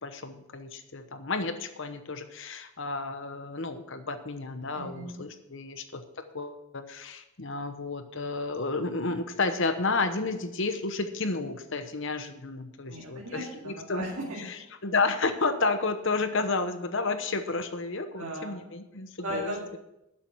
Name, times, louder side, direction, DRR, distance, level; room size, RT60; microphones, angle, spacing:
voice 1, 0.0-6.0 6.3-14.1 14.4-19.5, left 3 dB, 55° left, 9 dB, 1.0 m, -31 dB
voice 2, 4.7-5.2 12.9-14.6 18.2-18.6 19.2-19.8, right 1 dB, 70° right, -4 dB, 2.2 m, -37 dB
11.5 x 7.4 x 6.1 m, 0.89 s
head